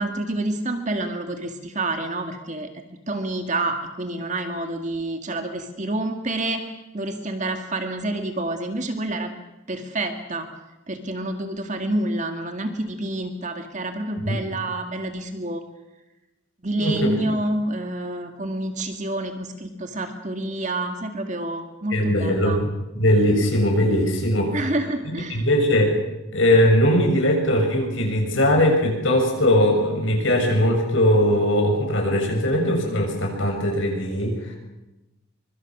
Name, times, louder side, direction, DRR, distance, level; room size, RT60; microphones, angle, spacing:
voice 1, 0.0-2.7 3.1-6.6 6.9-9.3 9.7-10.5 10.9-15.6 16.6-22.6 24.5-25.5, right 2 dB, 35° right, 6 dB, 1.9 m, -28 dB
voice 2, 16.8-17.1 21.9-22.7 22.9-24.6 25.3-25.9 26.3-34.6, left 1 dB, 70° left, 2 dB, 6.7 m, -20 dB
24.0 x 24.0 x 6.2 m, 0.98 s
head